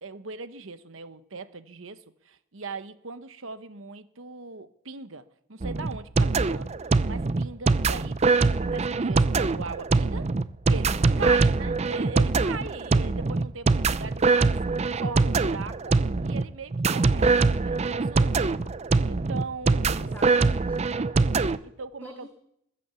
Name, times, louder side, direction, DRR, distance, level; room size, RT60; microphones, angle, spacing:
voice 1, 0.0-6.8 7.1-10.3 10.7-16.0 16.2-18.3 19.0-20.4 21.6-22.3, right 4 dB, 70° right, 12 dB, 1.0 m, -40 dB
sound 1, 5.6-21.6, right 3 dB, 30° right, 0.5 m, -23 dB
voice 2, 10.9-11.5 12.2-12.7 19.9-21.5 22.0-22.3, equal, 10° left, 1 dB, 1.8 m, -45 dB
21.0 x 8.7 x 7.0 m, 0.76 s
head